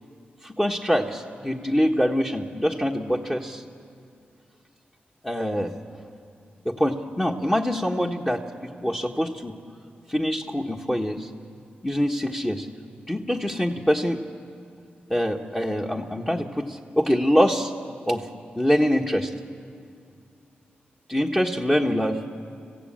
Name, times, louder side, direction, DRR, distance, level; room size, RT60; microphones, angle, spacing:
voice 1, 0.4-3.6 5.2-5.8 6.6-9.5 10.1-11.3 11.8-12.7 13.1-14.2 15.1-17.7 18.1-18.3 18.6-19.3 21.1-22.3, equal, 15° left, -1 dB, 1.4 m, -24 dB
26.0 x 15.5 x 8.8 m, 2.4 s
cardioid pair, 50°, 4 cm